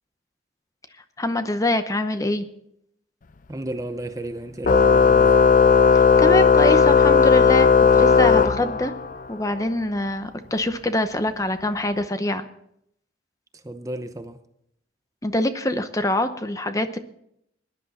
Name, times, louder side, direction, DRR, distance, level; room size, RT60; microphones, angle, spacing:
voice 1, 1.2-2.5 5.9-8.9 9.3-12.5 15.2-17.0, left 1 dB, 20° left, 0.8 m, -25 dB
voice 2, 3.5-5.4 13.5-14.4, right 1 dB, 20° right, 0.7 m, -33 dB
Organ, 4.6-9.2, left 5 dB, 45° left, 0.5 m, -15 dB
20.0 x 10.5 x 4.2 m
head